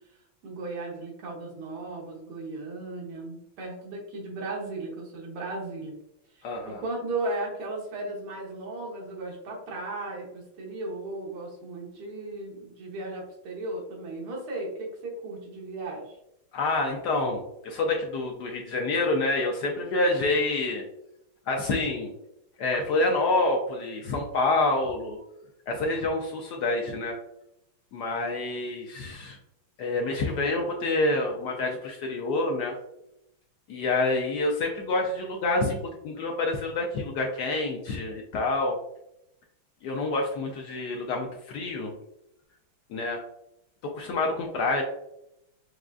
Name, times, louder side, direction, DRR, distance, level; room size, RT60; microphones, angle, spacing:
voice 1, 0.4-6.0 6.3-16.2, right 2 dB, 85° right, -2 dB, 2.0 m, -36 dB
voice 2, 6.4-6.8 16.5-20.8 21.5-22.1 22.6-25.2 25.7-27.2 27.9-29.4 29.8-32.8 33.7-35.8 36.0-38.8 39.8-41.9 42.9-43.2 43.8-44.8, left 2 dB, 80° left, 1 dB, 0.9 m, -27 dB
6.1 x 2.3 x 2.3 m, 0.81 s
omnidirectional pair, 2.3 m